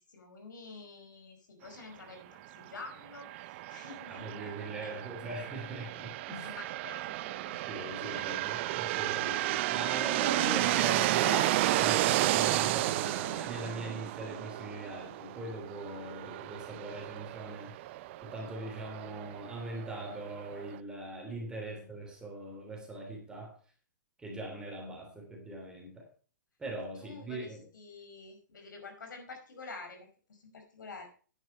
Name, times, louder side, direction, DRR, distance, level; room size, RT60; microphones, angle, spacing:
voice 1, 0.0-5.0 6.4-9.0 9.4-9.7 21.6-21.9 27.0-31.1, left 3 dB, 75° left, 5.1 m, -49 dB
sound 1, 3.2-20.8, right 17 dB, 40° right, 0.4 m, -32 dB
voice 2, 4.1-6.5 7.4-17.7 18.2-23.6 24.2-26.1 26.6-27.6, right 1 dB, 10° right, 3.1 m, -41 dB
10.0 x 9.0 x 5.5 m
hypercardioid pair, 140°, 10 cm